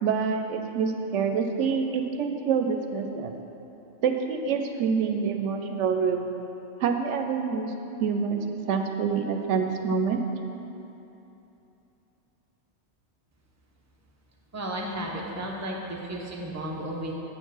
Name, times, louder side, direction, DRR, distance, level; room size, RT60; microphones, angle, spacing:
voice 1, 0.0-3.3 4.0-6.3 6.8-7.7 8.0-8.4 8.7-10.2, right 6 dB, 85° right, 5 dB, 0.9 m, -26 dB
voice 2, 14.5-17.2, right 1 dB, 15° right, -2 dB, 0.7 m, -33 dB
7.8 x 4.5 x 6.2 m, 3.0 s
omnidirectional pair, 1.2 m